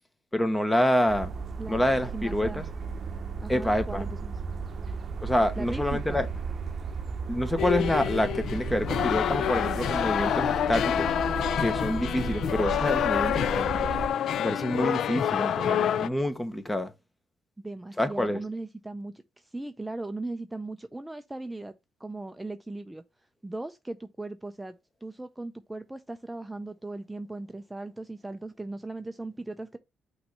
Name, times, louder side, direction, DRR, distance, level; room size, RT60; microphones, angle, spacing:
voice 1, 0.3-1.3 1.7-2.7 3.5-4.1 5.2-6.3 7.3-11.1 11.6-14.0 14.4-16.9 18.0-18.4, left 1 dB, 10° left, 1.0 m, -27 dB
sound 1, 1.1-14.1, right 5 dB, 45° right, 0.7 m, -35 dB
voice 2, 1.6-2.6 3.4-4.3 5.6-6.2 17.6-21.7 22.0-23.0 23.4-24.7 25.0-29.8, right 2 dB, 10° right, 0.5 m, -38 dB
sound 2, 7.6-16.1, left 9 dB, 70° left, 0.4 m, -27 dB
6.0 x 3.2 x 5.2 m
cardioid pair, 90°, 0 cm